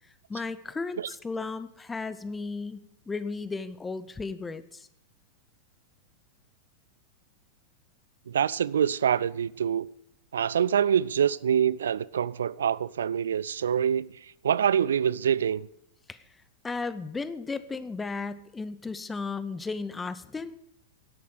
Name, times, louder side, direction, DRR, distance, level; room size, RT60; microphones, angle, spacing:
voice 1, 0.3-4.9 16.1-16.2 16.6-20.6, left 4 dB, 10° left, 0.5 m, -35 dB
voice 2, 8.3-9.9 10.3-14.1 14.4-15.7, right 8 dB, 65° right, 0.3 m, -25 dB
11.5 x 8.3 x 5.8 m
figure-of-eight pair, 95°, 0 cm